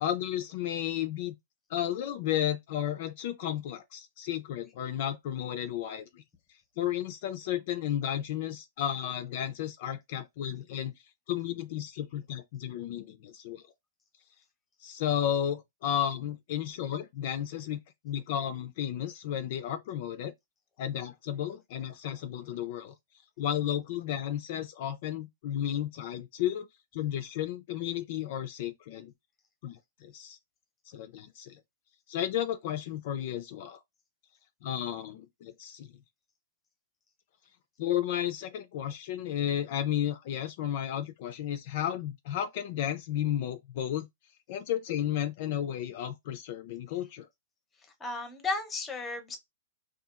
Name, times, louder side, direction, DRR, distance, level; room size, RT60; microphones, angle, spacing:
voice 1, 0.0-1.3 1.7-6.2 6.8-13.6 14.8-20.3 20.8-22.9 23.4-26.7 26.9-29.1 29.6-30.4 30.9-31.6 32.1-33.8 34.6-35.9 37.8-44.1 44.5-47.3, left 10 dB, 50° left, 0.4 m, -33 dB
voice 2, 48.0-49.4, left 3 dB, 15° left, 0.7 m, -34 dB
2.8 x 2.3 x 2.4 m
hypercardioid pair, 150°, 0 cm